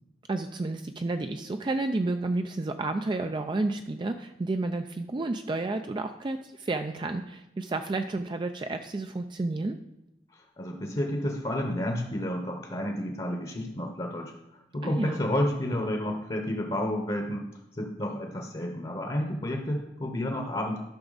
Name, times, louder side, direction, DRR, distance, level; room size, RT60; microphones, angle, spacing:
voice 1, 0.3-9.8 14.8-15.2, right 2 dB, 25° right, 6 dB, 0.4 m, -31 dB
voice 2, 10.3-17.5 17.8-20.8, left 1 dB, 30° left, 2 dB, 0.9 m, -31 dB
12.5 x 5.8 x 4.0 m, 0.89 s
head